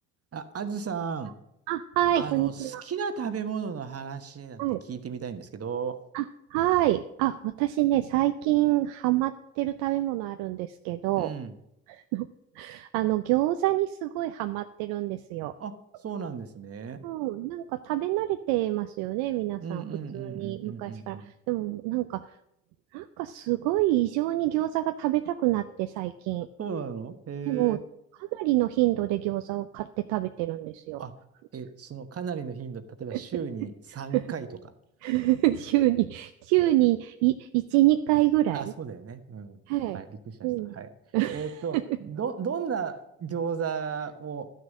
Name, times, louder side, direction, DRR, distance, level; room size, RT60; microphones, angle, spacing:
voice 1, 0.3-1.3 2.1-6.0 11.2-11.6 15.6-17.1 19.6-21.3 26.6-27.8 31.0-31.1 31.5-34.7 38.5-39.6 39.9-40.9 41.3-44.5, right 6 dB, 45° right, 9 dB, 1.2 m, -35 dB
voice 2, 1.7-2.8 4.6-4.8 6.1-6.2 6.5-11.3 11.9-12.3 12.5-15.5 17.0-19.8 20.1-21.2 21.5-22.3 22.9-26.5 27.5-27.8 28.2-31.0 33.1-33.2 34.1-34.2 35.0-38.7 39.7-40.0 40.4-40.8 41.1-41.4 41.7-42.0, right 16 dB, 80° right, 9 dB, 0.6 m, -26 dB
12.0 x 6.5 x 7.4 m, 0.81 s
hypercardioid pair, 60°, 34 cm